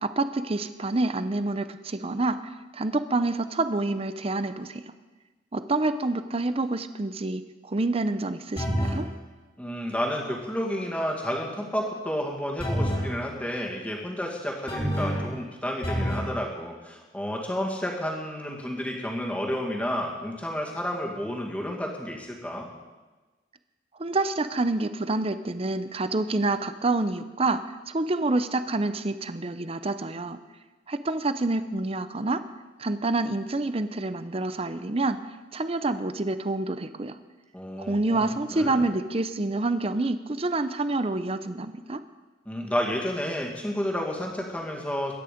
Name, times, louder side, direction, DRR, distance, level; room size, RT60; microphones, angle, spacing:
voice 1, 0.0-4.8 5.5-7.4 7.7-9.1 24.0-27.6 27.9-30.4 30.9-32.4 32.8-35.2 35.5-37.2 37.8-42.0, right 2 dB, 30° right, 11 dB, 0.6 m, -27 dB
sound 1, 8.6-9.1 12.6-13.1 14.7-15.3 15.8-16.3, equal, 30° left, 2.8 m, -27 dB
voice 2, 9.6-22.7 37.5-38.9 42.5-45.1, equal, 5° left, -1 dB, 2.2 m, -31 dB
22.0 x 9.7 x 5.2 m, 1.2 s
head